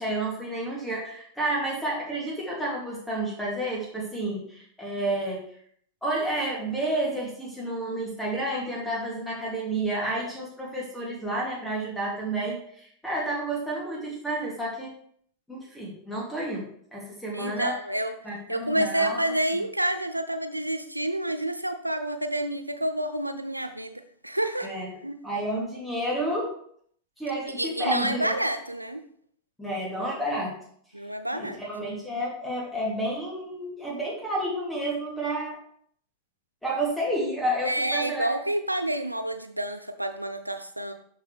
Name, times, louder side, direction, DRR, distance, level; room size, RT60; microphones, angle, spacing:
voice 1, 0.0-5.4 6.0-14.9 15.5-17.8 18.2-19.3 24.6-24.9 25.2-26.5 27.2-28.3 29.6-30.5 31.3-35.6 36.6-38.4, right 1 dB, 5° left, -4 dB, 2.4 m, -30 dB
voice 2, 17.3-18.1 18.5-24.7 25.0-25.2 27.5-29.0 30.9-31.6 37.6-40.9, right 1 dB, 85° right, 8 dB, 0.7 m, -29 dB
12.0 x 4.7 x 3.3 m, 0.63 s
figure-of-eight pair, 90°, 0 cm